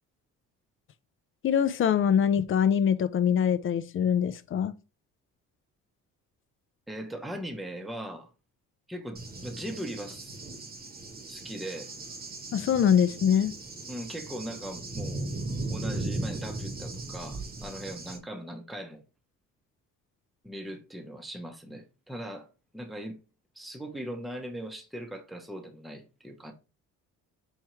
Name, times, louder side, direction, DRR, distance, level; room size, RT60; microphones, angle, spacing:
voice 1, 1.4-4.7 12.5-13.5, left 8 dB, 40° left, 0.5 m, -24 dB
voice 2, 6.9-8.3 8.9-10.4 11.3-11.9 13.9-15.3 15.7-19.0 20.4-22.5 22.7-23.2 23.6-26.5, right 1 dB, ahead, 0.7 m, -39 dB
Cricket / Thunder, 9.2-18.2, right 2 dB, 30° right, 1.0 m, -37 dB
4.4 x 3.5 x 3.0 m
cardioid pair, 95°, 31 cm